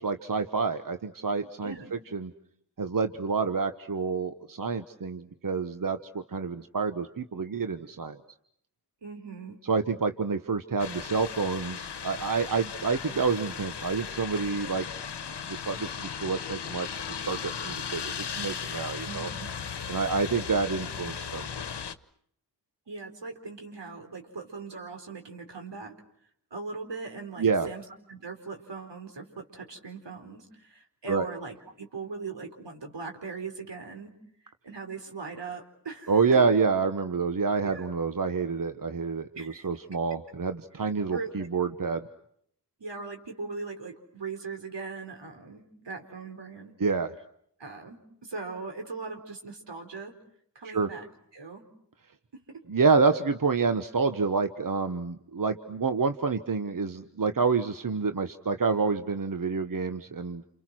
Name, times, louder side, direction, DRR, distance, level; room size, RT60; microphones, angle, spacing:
voice 1, 0.0-2.3 2.8-8.2 9.7-14.9 15.5-19.3 19.9-21.5 27.4-27.7 31.1-31.2 36.1-42.1 46.8-47.1 50.6-50.9 52.7-60.4, right 4 dB, 50° right, 9 dB, 1.2 m, -28 dB
voice 2, 1.6-2.0 9.0-9.6 19.0-19.5 22.9-26.0 26.5-34.1 34.6-36.4 37.6-37.9 39.3-39.7 40.8-41.5 42.8-46.7 47.6-50.1 50.5-51.1 51.3-51.6 52.3-52.6, right 4 dB, 80° right, 4 dB, 4.6 m, -40 dB
sound 1, 10.8-22.0, left 7 dB, 70° left, 1.2 m, -37 dB
30.0 x 28.5 x 6.2 m, 0.68 s
wide cardioid pair, 60°, 42 cm